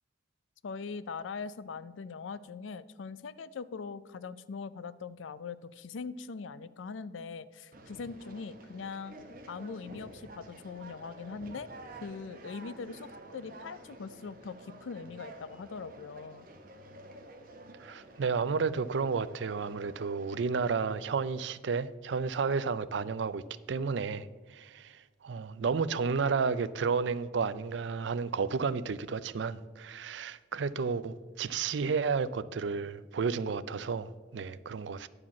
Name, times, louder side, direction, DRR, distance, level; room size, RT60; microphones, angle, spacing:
voice 1, 0.6-9.1 9.5-16.5, left 5 dB, 85° left, 15 dB, 0.4 m, -41 dB
Conversation, 7.7-20.8, right 1 dB, 50° right, 1.1 m, -50 dB
voice 2, 17.8-35.1, right 5 dB, 65° right, 16 dB, 0.4 m, -32 dB
10.5 x 4.9 x 7.1 m, 1.4 s
head